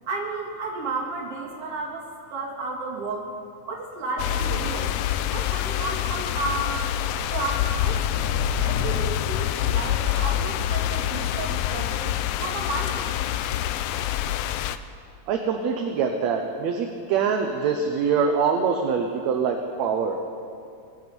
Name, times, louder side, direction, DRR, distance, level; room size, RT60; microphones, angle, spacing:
voice 1, 0.1-3.3 3.7-4.9 5.3-6.9 7.3-12.1 12.4-13.0, right 3 dB, 55° right, -1 dB, 3.0 m, -32 dB
sound 1, 4.2-14.8, left 11 dB, 80° left, 1.5 m, -26 dB
voice 2, 15.3-20.2, right 6 dB, 75° right, 3 dB, 2.1 m, -24 dB
22.0 x 8.0 x 7.0 m, 2.3 s
omnidirectional pair, 3.4 m